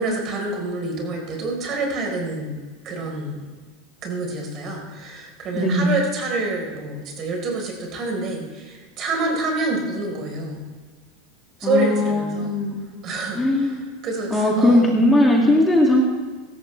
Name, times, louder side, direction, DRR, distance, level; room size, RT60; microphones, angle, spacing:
voice 1, 0.0-2.6 2.8-3.4 4.0-10.6 11.6-12.6 13.0-14.8, right 3 dB, 40° right, 1 dB, 4.4 m, -27 dB
voice 2, 5.5-5.9 11.6-12.8 13.4-13.8 14.3-16.0, left 1 dB, 10° left, -1 dB, 2.3 m, -18 dB
17.5 x 13.5 x 3.4 m, 1.4 s
supercardioid pair, 115°, 0 cm